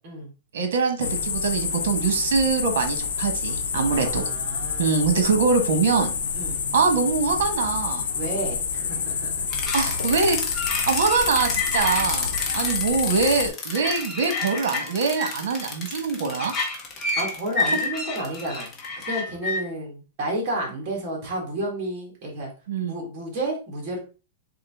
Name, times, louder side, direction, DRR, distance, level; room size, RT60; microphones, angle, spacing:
voice 1, 0.5-4.3 4.8-6.1 6.7-8.1 9.7-10.4 10.9-16.5 22.7-22.9, right 5 dB, 70° right, 7 dB, 1.1 m, -23 dB
sound 1, 1.0-13.5, left 6 dB, 80° left, 0.8 m, -28 dB
voice 2, 3.9-5.0 6.3-6.6 8.2-9.5 17.2-18.7 19.1-22.5 22.8-24.0, right 1 dB, 30° right, -1 dB, 1.7 m, -31 dB
sound 2, 9.5-19.6, left 3 dB, 15° left, 0.8 m, -29 dB
3.8 x 3.6 x 3.5 m, 0.35 s
supercardioid pair, 165°, 0 cm